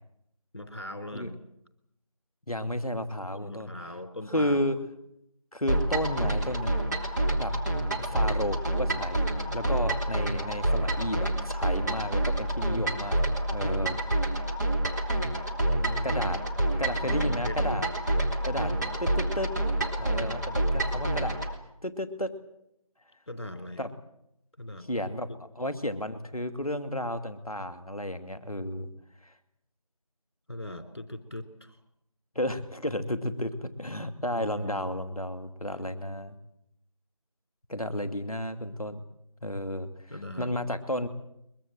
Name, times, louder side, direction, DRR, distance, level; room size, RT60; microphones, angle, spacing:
voice 1, 0.5-1.4 3.3-4.7 15.7-16.2 17.0-17.6 23.3-23.9 24.6-24.9 25.3-25.4 30.5-31.8 34.3-35.0 40.1-40.5, left 1 dB, 45° left, 9 dB, 3.5 m, -40 dB
voice 2, 2.5-3.7 4.3-4.8 5.5-6.7 7.3-7.5 8.0-13.2 13.5-14.0 16.0-16.4 16.8-17.9 18.4-18.7 19.0-19.5 20.0-21.4 21.8-22.3 23.8-23.9 24.9-28.9 29.2-29.3 32.3-36.3 37.7-39.0 39.4-39.9 40.4-41.1, left 1 dB, ahead, -24 dB, 1.0 m, -32 dB
sound 1, 5.7-21.5, right 1 dB, 30° right, 3.0 m, -28 dB
23.0 x 22.0 x 7.6 m, 0.77 s
figure-of-eight pair, 175°, 19 cm